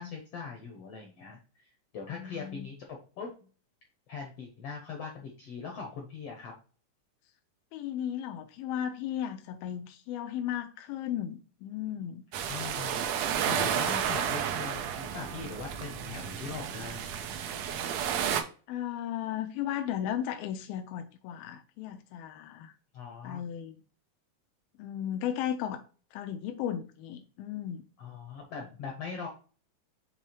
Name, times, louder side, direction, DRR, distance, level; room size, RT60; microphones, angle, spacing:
voice 1, 0.0-3.5 4.1-6.5 12.5-13.1 13.4-17.1 22.9-23.4 28.0-29.3, left 5 dB, 70° left, 1.5 m, -41 dB
voice 2, 2.1-2.7 7.7-12.3 18.7-22.7 23.2-23.8 24.8-25.8 26.1-27.8, left 10 dB, 85° left, 2.3 m, -35 dB
sound 1, 12.3-18.4, right 8 dB, 80° right, 1.5 m, -32 dB
6.9 x 3.3 x 4.4 m
omnidirectional pair, 4.1 m